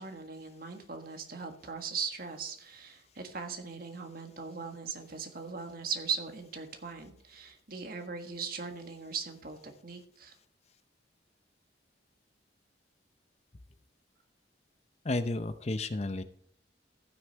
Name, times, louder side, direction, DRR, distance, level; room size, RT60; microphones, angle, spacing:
voice 1, 0.0-10.3, right 5 dB, 50° right, 5 dB, 1.6 m, -39 dB
voice 2, 15.0-16.2, left 2 dB, 35° left, 11 dB, 0.6 m, -32 dB
14.5 x 6.5 x 4.6 m, 0.62 s
head